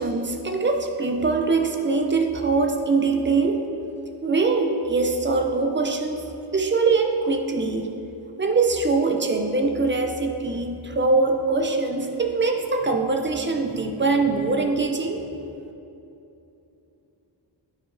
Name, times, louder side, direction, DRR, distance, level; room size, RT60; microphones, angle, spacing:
voice 1, 0.0-3.7 4.2-6.3 6.5-7.9 8.4-15.2, right 3 dB, 25° right, 4 dB, 0.3 m, -23 dB
9.9 x 4.9 x 2.5 m, 2.9 s
wide cardioid pair, 165°, 48 cm